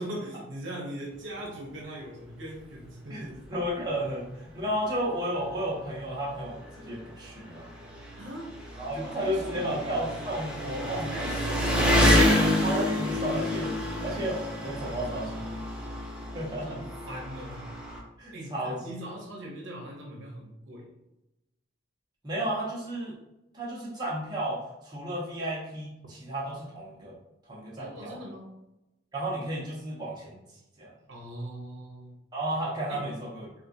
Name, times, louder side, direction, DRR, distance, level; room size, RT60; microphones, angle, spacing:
voice 1, 0.0-3.4 8.1-8.5 8.9-9.9 11.1-12.3 16.6-17.7 18.3-20.9 27.8-28.5 31.1-32.1 32.9-33.1, right 1 dB, 75° right, -1 dB, 0.8 m, -40 dB
voice 2, 3.1-7.7 8.8-11.1 12.6-13.7 14.0-15.6 16.3-16.7 18.2-18.8 22.2-23.1 23.5-27.1 27.5-28.2 29.1-30.4 30.8-30.9 32.3-33.5, right 1 dB, 20° right, -6 dB, 1.0 m, -33 dB
Engine, 3.4-3.5 3.9-4.0 5.0-5.1 5.3-18.0, left 1 dB, 5° right, 0.5 m, -28 dB
4.3 x 2.3 x 2.6 m, 0.92 s
head